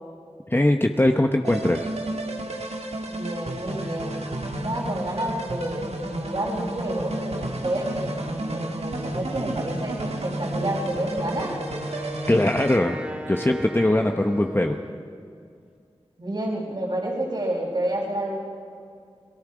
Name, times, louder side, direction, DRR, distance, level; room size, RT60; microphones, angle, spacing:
voice 1, 0.5-1.9 12.3-13.0 13.3-14.8, left 1 dB, 20° left, 4 dB, 0.9 m, -21 dB
sound 1, 1.4-12.8, right 1 dB, 80° right, 1.8 m, -32 dB
voice 2, 3.1-4.3 4.6-11.5 16.2-18.4, right 1 dB, 50° right, -6 dB, 4.8 m, -29 dB
Wind instrument woodwind instrument, 10.9-15.2, right 1 dB, 10° right, 2.4 m, -37 dB
29.0 x 19.0 x 5.0 m, 2.3 s
cardioid pair, 45°, 11 cm